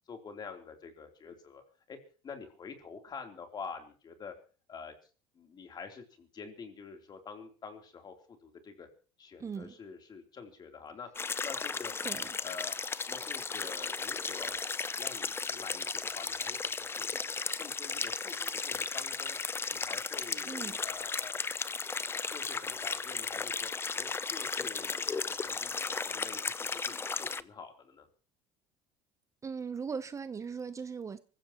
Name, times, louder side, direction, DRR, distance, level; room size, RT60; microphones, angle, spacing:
voice 1, 0.1-1.6 1.9-2.0 2.2-4.3 4.7-4.9 5.3-8.9 9.2-11.1 11.4-11.9 12.4-12.8 13.1-17.3 17.6-19.4 19.7-21.4 22.3-28.1, left 5 dB, 35° left, 3.4 m, -47 dB
voice 2, 9.4-9.7 12.0-12.2 20.5-20.8 29.4-31.2, right 6 dB, 25° right, 0.8 m, -39 dB
sound 1, 11.2-27.4, left 4 dB, 20° left, 0.6 m, -35 dB
25.0 x 15.0 x 3.0 m
supercardioid pair, 100°, 12 cm